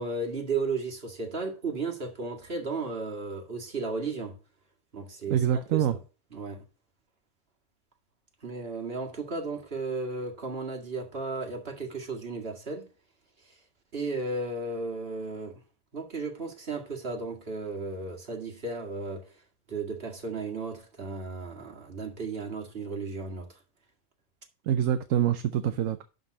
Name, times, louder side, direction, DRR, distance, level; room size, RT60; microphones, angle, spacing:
voice 1, 0.0-4.4 4.9-6.0 6.3-6.6 8.4-12.9 13.9-15.6 15.9-19.3 19.7-23.5, right 3 dB, 45° right, 2.3 m, -34 dB
voice 2, 5.3-6.0 24.7-26.0, right 10 dB, 70° right, 1.0 m, -25 dB
11.5 x 4.1 x 6.3 m
omnidirectional pair, 1.5 m